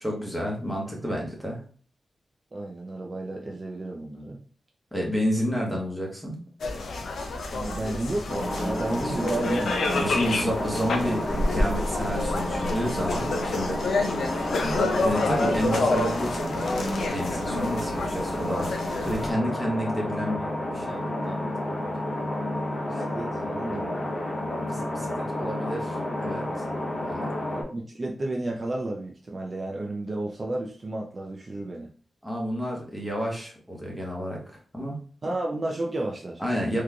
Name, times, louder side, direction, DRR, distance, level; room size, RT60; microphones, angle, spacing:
voice 1, 0.0-1.6 4.9-6.4 9.0-9.3 9.9-13.8 14.6-16.7 17.0-21.8 24.6-26.4 27.0-27.3 32.2-34.4 34.7-35.0 36.4-36.8, equal, 5° left, -2 dB, 1.0 m, -30 dB
voice 2, 2.5-4.4 7.5-10.2 22.9-24.1 27.5-31.9 35.2-36.4, right 2 dB, 30° right, 0 dB, 0.4 m, -32 dB
sound 1, 6.6-19.3, left 2 dB, 80° left, 0.5 m, -29 dB
sound 2, 8.3-27.6, left 1 dB, 40° left, 0.7 m, -31 dB
3.7 x 3.1 x 2.2 m, 0.41 s
wide cardioid pair, 145°, 0 cm